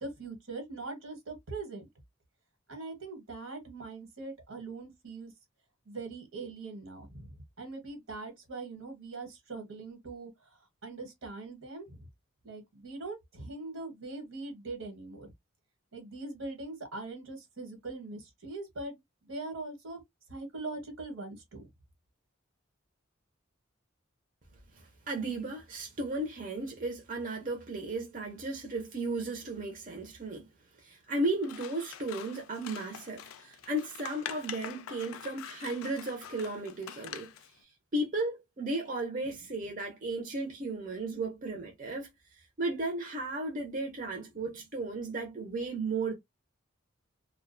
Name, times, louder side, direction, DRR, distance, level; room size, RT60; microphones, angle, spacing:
voice 1, 0.0-1.9 2.7-5.3 5.8-10.3 10.8-12.1 12.4-15.3 15.9-19.0 19.2-20.0 20.3-21.7, right 3 dB, 75° right, 1.1 m, -41 dB
voice 2, 24.8-30.5 30.8-37.3 37.9-42.1 42.4-46.2, right 2 dB, 40° right, 0.5 m, -35 dB
Scissors, 31.4-37.5, left 10 dB, 85° left, 0.3 m, -45 dB
2.3 x 2.1 x 2.5 m
head